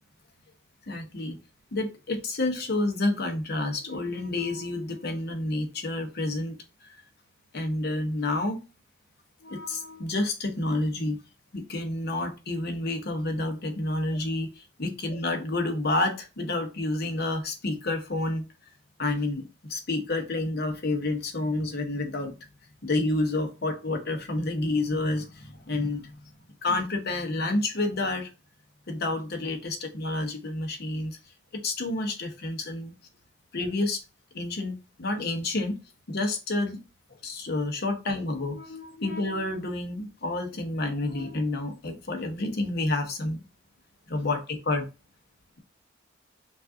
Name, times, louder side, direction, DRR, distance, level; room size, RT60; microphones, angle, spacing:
voice 1, 0.9-1.4 1.7-6.6 7.5-8.6 9.4-11.2 11.5-18.4 19.0-22.3 22.8-26.2 26.6-28.3 28.9-31.2 31.6-32.9 33.5-34.0 34.3-35.8 36.1-36.8 37.2-43.4 44.1-44.9, left 2 dB, 55° left, 5 dB, 0.8 m, -29 dB
5.2 x 2.4 x 2.6 m, 0.30 s
head